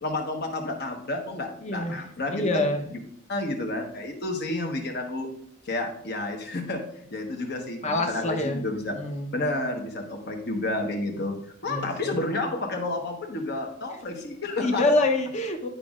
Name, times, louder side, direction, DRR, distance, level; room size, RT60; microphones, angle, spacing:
voice 1, 0.0-3.0 3.3-5.3 5.6-8.9 9.3-11.4 11.6-14.8, left 2 dB, 55° left, 3 dB, 1.2 m, -30 dB
voice 2, 1.6-2.0 2.3-2.8 7.8-8.6 8.9-9.3 11.7-12.2 14.6-15.7, left 2 dB, 35° left, 4 dB, 0.8 m, -26 dB
10.5 x 5.2 x 2.4 m, 0.66 s
head